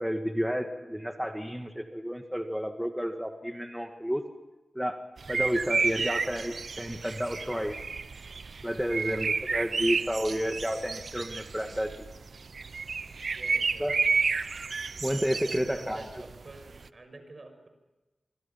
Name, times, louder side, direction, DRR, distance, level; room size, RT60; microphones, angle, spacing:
voice 1, 0.0-4.2 4.8-5.0 5.3-7.8 8.6-12.1 13.8-14.0 15.0-16.0, equal, 5° right, 5 dB, 1.9 m, -31 dB
sound 1, 5.2-16.9, right 4 dB, 75° right, 0.7 m, -31 dB
voice 2, 8.7-9.0 13.3-13.9 15.4-17.7, right 2 dB, 55° right, 7 dB, 6.3 m, -48 dB
26.0 x 25.0 x 5.8 m, 1.1 s
cardioid pair, 50°, 0 cm